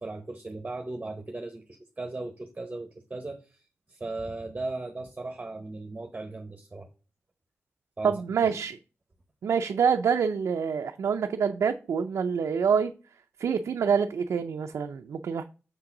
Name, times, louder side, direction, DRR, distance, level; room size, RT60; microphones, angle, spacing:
voice 1, 0.0-3.6 3.9-6.9 8.0-8.2, right 2 dB, 25° right, 1.0 m, -37 dB
voice 2, 8.0-8.8 9.4-12.9 13.4-15.4, right 6 dB, 85° right, 0.5 m, -26 dB
6.7 x 3.8 x 5.9 m
cardioid pair, 80°, 5 cm